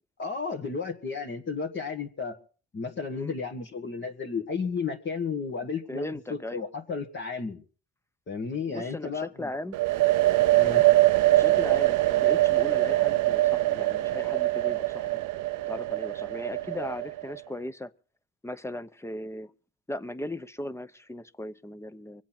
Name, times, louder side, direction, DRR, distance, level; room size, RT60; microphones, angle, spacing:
voice 1, 0.2-2.4 2.7-7.6 8.3-9.5 10.5-10.9, left 5 dB, 40° left, 1.7 m, -33 dB
voice 2, 5.9-6.6 8.7-9.8 11.3-15.2 15.7-17.9 18.4-19.5 19.9-22.2, left 1 dB, 10° left, 0.8 m, -37 dB
sound 1, 9.7-17.4, right 17 dB, 80° right, 0.6 m, -23 dB
23.5 x 8.3 x 5.9 m
cardioid pair, 90°, 30 cm